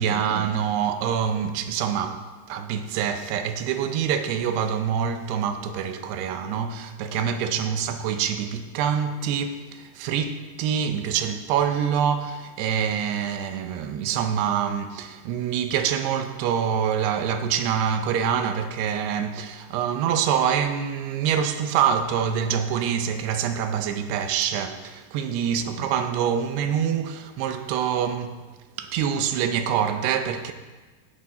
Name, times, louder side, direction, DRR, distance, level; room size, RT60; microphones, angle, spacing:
voice 1, 0.0-2.2 2.5-28.4 28.8-30.5, right 8 dB, 85° right, 2.9 m, -25 dB
17.5 x 8.5 x 4.2 m
omnidirectional pair, 4.7 m